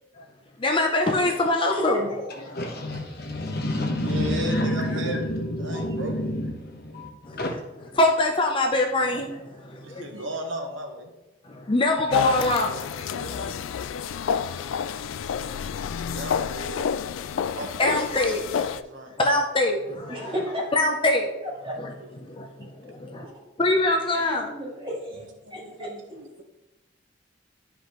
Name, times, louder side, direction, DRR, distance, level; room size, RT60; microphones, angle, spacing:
voice 1, 0.6-2.1 2.8-2.9 7.3-7.6 8.0-10.1 11.5-13.5 14.4-14.6 17.8-18.4 19.2-20.3 20.7-21.3 21.8-21.9 22.2-23.2 23.6-24.5, left 2 dB, 25° left, 2 dB, 0.6 m, -24 dB
voice 2, 1.7-2.3 5.7-6.0 10.1-10.3 20.1-20.7 21.6-21.8 23.1-23.3 24.1-25.9, equal, 25° right, -5 dB, 2.4 m, -33 dB
voice 3, 2.5-7.1 7.4-7.6, left 1 dB, 50° left, 3 dB, 1.1 m, -28 dB
voice 4, 4.0-6.2 9.8-11.1 13.1-13.6 16.1-16.9 17.5-19.1 22.2-22.4 25.4-26.4, right 1 dB, 75° right, 3 dB, 1.1 m, -36 dB
sound 1, 12.1-18.8, left 7 dB, 85° left, 0.3 m, -29 dB
11.0 x 5.1 x 3.0 m, 1.0 s
head